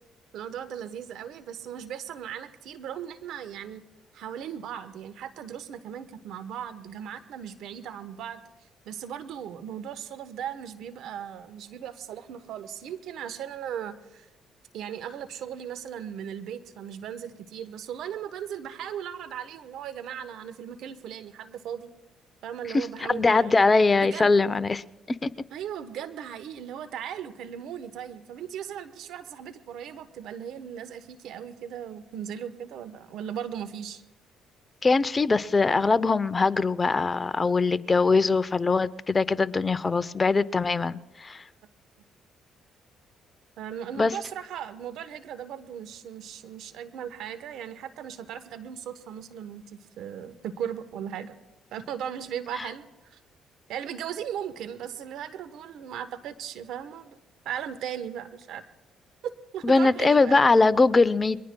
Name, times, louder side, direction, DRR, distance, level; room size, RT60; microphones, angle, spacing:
voice 1, 0.3-3.8 4.1-8.4 8.8-14.3 14.7-21.9 22.4-23.6 24.0-24.3 25.5-34.0 43.6-51.4 51.7-53.2 53.7-57.2 57.4-58.6 59.2-60.5, right 9 dB, 75° right, 1.1 m, -37 dB
voice 2, 22.7-24.8 25.2-25.3 34.8-41.4 44.0-44.1 52.6-52.7 59.6-61.4, left 3 dB, 30° left, 0.7 m, -22 dB
29.0 x 21.5 x 2.3 m
supercardioid pair, 60°, 0 cm